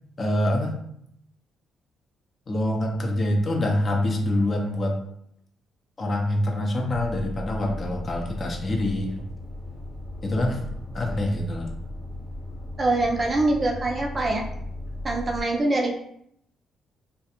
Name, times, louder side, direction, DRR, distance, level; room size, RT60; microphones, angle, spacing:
voice 1, 0.2-0.8 2.5-5.0 6.0-9.2 10.2-10.6 10.9-11.7, left 1 dB, 40° left, 1 dB, 0.5 m, -25 dB
sound 1, 6.9-15.4, left 1 dB, 5° left, 0.7 m, -36 dB
voice 2, 12.8-14.4 15.0-15.9, right 2 dB, 35° right, 1 dB, 0.4 m, -24 dB
2.4 x 2.1 x 2.8 m, 0.73 s
cardioid pair, 90°, 0 cm